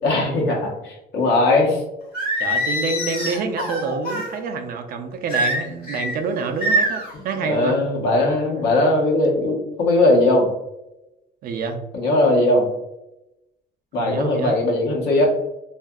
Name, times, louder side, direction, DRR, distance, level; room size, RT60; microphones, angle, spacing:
voice 1, 0.0-1.8 7.4-10.5 11.9-12.7 13.9-15.3, left 2 dB, 80° left, -1 dB, 0.9 m, -19 dB
Singing, 2.1-4.3 5.3-6.1 6.6-7.1, equal, 60° left, 1.2 m, -23 dB
voice 2, 2.4-7.8 11.4-11.8 14.0-14.6, right 4 dB, 60° right, 6 dB, 0.5 m, -27 dB
2.7 x 2.4 x 2.3 m, 0.91 s
cardioid pair, 110°, 17 cm